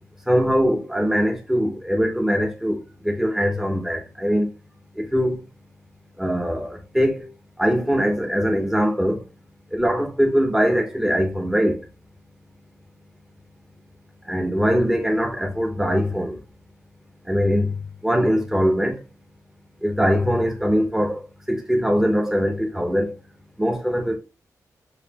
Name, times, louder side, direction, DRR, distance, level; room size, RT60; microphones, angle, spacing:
voice 1, 0.3-4.5 5.0-5.4 6.2-7.3 7.6-9.2 9.7-11.8 14.3-16.4 17.3-17.7 18.0-19.0 19.8-21.2 21.5-23.1 23.6-24.2, equal, 5° right, 0.9 m, -22 dB
4.1 x 3.2 x 2.9 m
wide cardioid pair, 140°, 6 cm